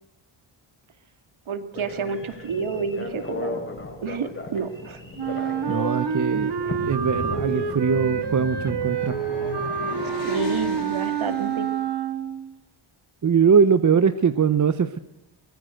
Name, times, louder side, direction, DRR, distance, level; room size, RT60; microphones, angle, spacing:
voice 1, 1.5-3.6 4.0-5.0 10.2-11.7, right 5 dB, 70° right, 10 dB, 2.4 m, -29 dB
Telephone, 1.7-7.8, left 2 dB, 25° left, 3.7 m, -36 dB
Wind instrument woodwind instrument, 5.2-12.5, right 7 dB, 50° right, 2.0 m, -28 dB
voice 2, 5.3-6.5 6.8-9.2 13.2-15.0, right 6 dB, 35° right, 12 dB, 0.8 m, -21 dB
sound 1, 6.4-11.7, left 3 dB, 60° left, 6.2 m, -36 dB
23.5 x 21.0 x 6.5 m, 0.87 s
wide cardioid pair, 170°, 50 cm